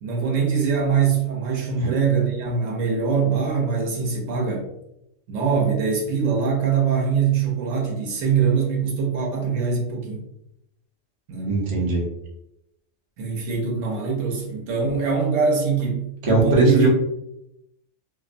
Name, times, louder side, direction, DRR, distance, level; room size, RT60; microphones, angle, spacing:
voice 1, 0.0-4.7 5.3-10.2 11.3-11.6 13.2-16.9, right 5 dB, 70° right, -1 dB, 1.0 m, -23 dB
voice 2, 11.4-12.0 16.2-16.9, right 3 dB, 40° right, -2 dB, 0.4 m, -19 dB
2.6 x 2.1 x 2.5 m, 0.84 s
omnidirectional pair, 1.4 m